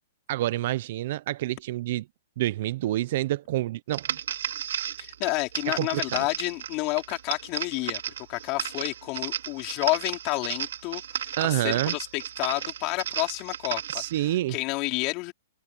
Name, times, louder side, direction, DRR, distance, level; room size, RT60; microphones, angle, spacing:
voice 1, 0.3-2.0 2.4-4.1 5.8-6.2 11.4-11.9 13.9-14.5, right 15 dB, 55° right, 0.8 m, -28 dB
sound 1, 3.9-14.2, right 10 dB, 70° right, 3.3 m, -34 dB
voice 2, 5.0-8.0 8.3-15.3, left 25 dB, 35° left, 4.3 m, -30 dB
hypercardioid pair, 140°, 0 cm